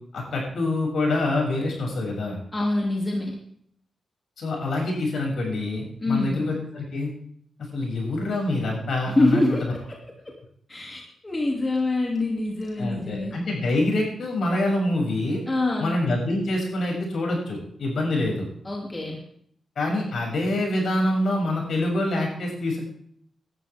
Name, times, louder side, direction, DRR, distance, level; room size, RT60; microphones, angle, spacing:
voice 1, 0.1-2.4 4.4-7.1 7.6-9.6 12.8-15.4 15.8-18.5 19.8-22.8, left 2 dB, 65° left, -1 dB, 6.9 m, -26 dB
voice 2, 2.5-3.4 6.0-6.5 9.1-10.0 10.2-10.3 10.7-13.4 15.5-16.0 18.6-19.2, left 2 dB, 20° left, -1 dB, 2.7 m, -25 dB
17.5 x 12.0 x 3.6 m, 0.66 s
wide cardioid pair, 140°, 0 cm